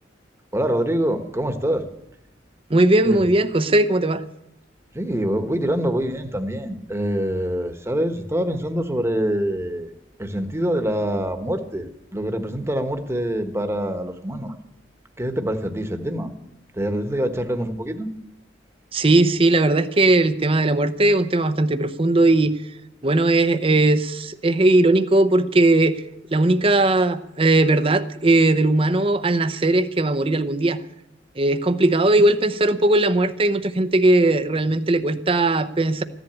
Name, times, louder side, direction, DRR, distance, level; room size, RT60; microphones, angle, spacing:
voice 1, 0.5-1.8 3.0-3.2 4.9-9.9 10.2-14.5 15.2-16.3 16.7-18.1, right 1 dB, 15° right, 7 dB, 1.2 m, -25 dB
voice 2, 2.7-4.2 18.9-22.6 23.0-26.0 26.3-30.8 31.4-36.0, right 2 dB, 30° right, 11 dB, 0.7 m, -18 dB
15.0 x 11.0 x 8.7 m, 0.83 s
head